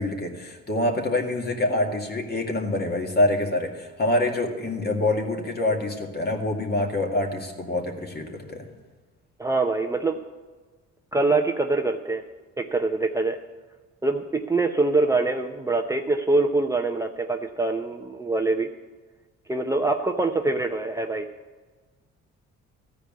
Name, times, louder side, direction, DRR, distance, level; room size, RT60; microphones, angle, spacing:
voice 1, 0.0-8.7, left 2 dB, 35° left, 3 dB, 2.1 m, -26 dB
voice 2, 9.4-10.2 11.1-12.2 12.6-13.4 14.0-18.7 19.5-21.3, right 3 dB, 10° right, 2 dB, 0.7 m, -24 dB
14.5 x 5.0 x 9.2 m, 1.4 s
cardioid pair, 100°, 29 cm